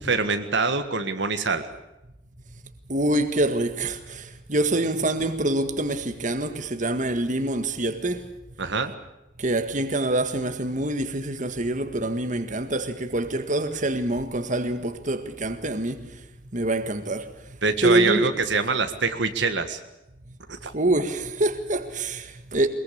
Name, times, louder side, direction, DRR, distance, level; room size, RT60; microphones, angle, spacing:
voice 1, 0.0-1.6 8.6-8.9 17.6-19.8 20.5-20.7, right 4 dB, 65° right, 1.7 m, -24 dB
voice 2, 2.9-8.3 9.4-16.3 16.5-18.3 20.3-20.4 20.7-22.7, right 1 dB, 40° right, 1.8 m, -26 dB
22.0 x 22.0 x 8.5 m
head